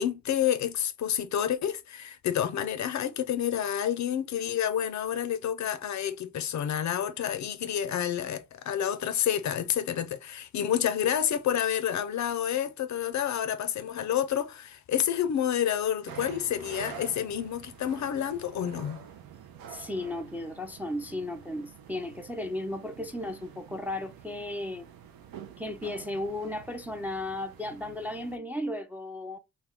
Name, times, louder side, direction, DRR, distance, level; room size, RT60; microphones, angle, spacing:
voice 1, 0.0-19.0, left 9 dB, 55° left, 0.4 m, -29 dB
sound 1, 16.1-28.4, right 9 dB, 80° right, 0.5 m, -47 dB
voice 2, 19.7-24.9 25.6-29.4, left 1 dB, 5° right, 0.3 m, -35 dB
2.3 x 2.3 x 3.4 m
supercardioid pair, 45°, 35 cm